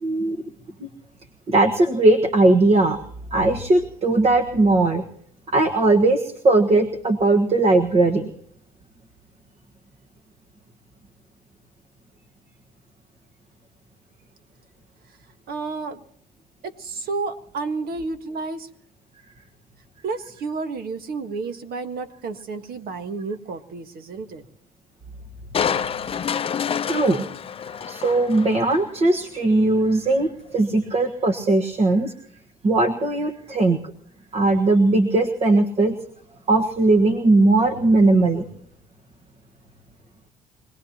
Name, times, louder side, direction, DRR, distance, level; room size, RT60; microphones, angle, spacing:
voice 1, 0.0-0.4 0.8-0.9 1.5-3.0 3.3-5.0 5.5-8.3 26.9-27.2 27.9-32.1 32.6-33.8 34.3-35.9 36.5-38.4, right 2 dB, 40° right, 6 dB, 1.5 m, -19 dB
voice 2, 15.5-16.0 16.6-18.7 20.0-24.4, right 4 dB, 65° right, 8 dB, 1.6 m, -31 dB
Crushing, 25.5-28.9 29.4-29.5, left 7 dB, 35° left, 0.6 m, -28 dB
25.0 x 19.0 x 2.9 m, 0.65 s
cardioid pair, 110°, 17 cm